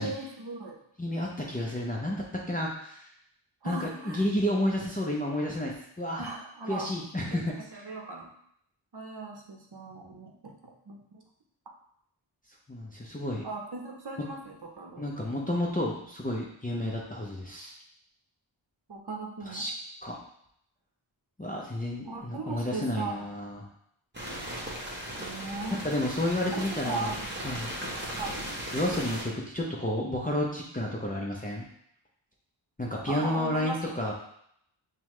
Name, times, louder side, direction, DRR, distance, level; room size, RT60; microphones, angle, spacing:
voice 1, 0.0-0.8 3.6-4.3 6.2-6.9 7.3-7.4 7.7-8.3 8.9-11.2 13.4-15.1 18.9-19.6 22.1-23.3 25.2-25.8 26.5-27.5 28.2-28.5 33.1-34.0, right 3 dB, 50° right, 1 dB, 0.7 m, -38 dB
voice 2, 1.0-3.1 3.6-6.2 6.7-7.5 12.7-13.4 15.0-17.7 19.5-19.7 20.0-20.2 21.4-23.7 25.7-27.2 27.4-27.7 28.7-31.6 32.8-34.1, left 1 dB, 15° left, -4 dB, 0.6 m, -31 dB
sound 1, 24.1-29.2, equal, 20° right, 1.0 m, -37 dB
5.4 x 2.2 x 3.1 m, 0.70 s
wide cardioid pair, 65°, 49 cm